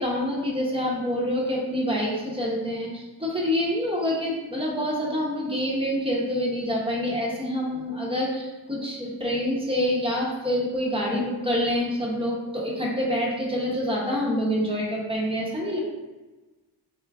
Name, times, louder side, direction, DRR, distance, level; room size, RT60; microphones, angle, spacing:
voice 1, 0.0-15.8, equal, 10° right, -4 dB, 0.9 m, -26 dB
2.9 x 2.4 x 3.5 m, 1.2 s
cardioid pair, 85°, 46 cm